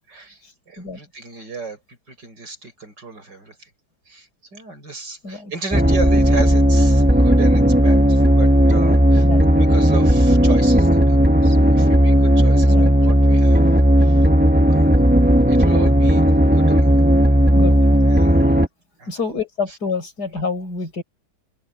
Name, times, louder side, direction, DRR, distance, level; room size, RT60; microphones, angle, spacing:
voice 1, 0.1-3.7 4.1-9.3 9.6-13.6 14.0-14.3 14.6-14.9 15.4-17.0 18.1-18.6 19.0-19.1 19.7-19.8, right 4 dB, 85° right, 6.6 m, -34 dB
voice 2, 5.2-5.8 9.2-9.7 12.7-12.9 17.5-17.8 19.1-21.0, left 4 dB, 65° left, 5.4 m, -28 dB
sound 1, 5.7-18.7, equal, 5° right, 1.5 m, -14 dB
open air
omnidirectional pair, 1.8 m